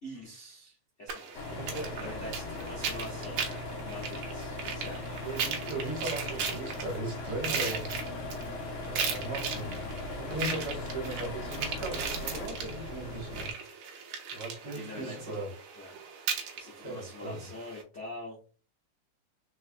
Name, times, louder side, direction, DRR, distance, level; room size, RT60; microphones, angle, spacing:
voice 1, 0.0-1.5 2.0-5.2 14.7-15.4 15.7-16.0 16.5-18.4, left 1 dB, 45° left, -6 dB, 0.9 m, -44 dB
sound 1, 1.1-17.8, right 6 dB, 80° right, 2.3 m, -38 dB
sound 2, 1.3-13.5, left 2 dB, 75° left, 1.2 m, -39 dB
voice 2, 1.5-2.1 5.2-7.9 8.8-13.5 14.3-15.5 16.8-17.4, right 2 dB, 50° right, 0 dB, 2.0 m, -38 dB
4.5 x 4.4 x 2.2 m, 0.36 s
omnidirectional pair, 3.5 m